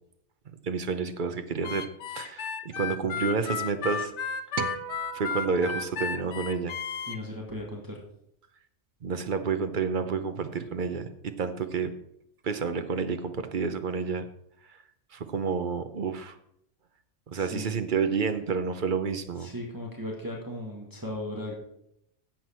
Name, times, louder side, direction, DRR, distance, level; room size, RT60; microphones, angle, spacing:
voice 1, 0.6-4.1 5.1-6.8 9.0-11.9 12.4-14.3 15.1-16.3 17.3-19.5, right 5 dB, 45° right, 9 dB, 0.9 m, -30 dB
Harmonica, 1.6-7.2, left 7 dB, 75° left, 0.9 m, -33 dB
sound 1, 4.6-7.0, right 8 dB, 75° right, 1.0 m, -38 dB
voice 2, 7.0-8.0 17.3-17.8 19.4-21.5, left 1 dB, 15° right, -2 dB, 1.7 m, -37 dB
10.5 x 7.8 x 4.4 m, 0.76 s
omnidirectional pair, 1.2 m